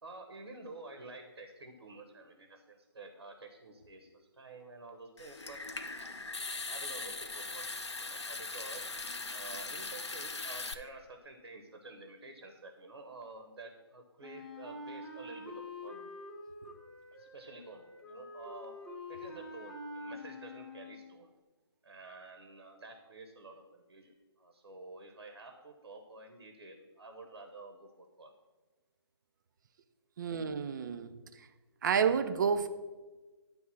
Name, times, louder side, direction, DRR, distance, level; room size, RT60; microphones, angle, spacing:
voice 1, 0.0-5.8 6.7-8.8 9.3-16.1 17.1-18.8 19.1-21.3 21.8-28.3, right 2 dB, 75° right, 4 dB, 1.1 m, -50 dB
Water tap faucet / Sink (filling or washing) / Trickle dribble, 5.2-10.7, left 3 dB, 90° left, 0.7 m, -40 dB
Wind instrument woodwind instrument, 14.2-21.2, left 2 dB, 5° left, 0.4 m, -46 dB
voice 2, 30.2-31.1 31.8-32.7, right 6 dB, 45° right, 10 dB, 0.6 m, -29 dB
10.0 x 3.5 x 6.1 m, 1.2 s
figure-of-eight pair, 145°, 14 cm